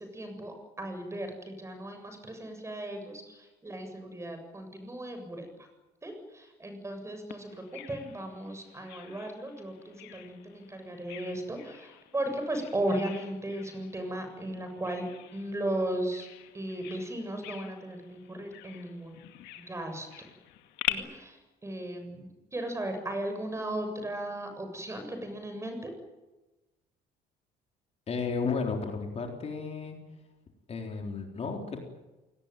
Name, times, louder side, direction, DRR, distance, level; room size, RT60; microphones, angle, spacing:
voice 1, 0.0-5.7 6.0-16.3 16.5-19.2 19.6-20.3 20.9-25.9, right 1 dB, 15° right, 6 dB, 7.6 m, -36 dB
Bird vocalization bird call bird song, 7.3-20.9, left 16 dB, 90° left, 2.2 m, -44 dB
voice 2, 28.1-30.0 30.7-31.8, left 4 dB, 40° left, 3 dB, 3.9 m, -33 dB
27.5 x 19.0 x 9.2 m, 1.1 s
cardioid pair, 110°, 17 cm